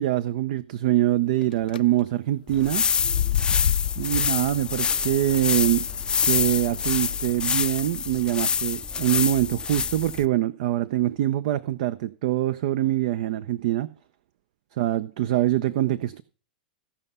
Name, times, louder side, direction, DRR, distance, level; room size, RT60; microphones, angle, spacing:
voice 1, 0.0-2.8 4.0-5.9 6.2-13.9 14.8-16.2, right 14 dB, 60° right, 0.6 m, -24 dB
sound 1, 1.4-1.8 2.9-7.3, left 10 dB, 75° left, 0.4 m, -30 dB
sound 2, 2.5-10.3, left 6 dB, 20° left, 0.5 m, -26 dB
15.5 x 5.6 x 5.5 m
hypercardioid pair, 105°, 5 cm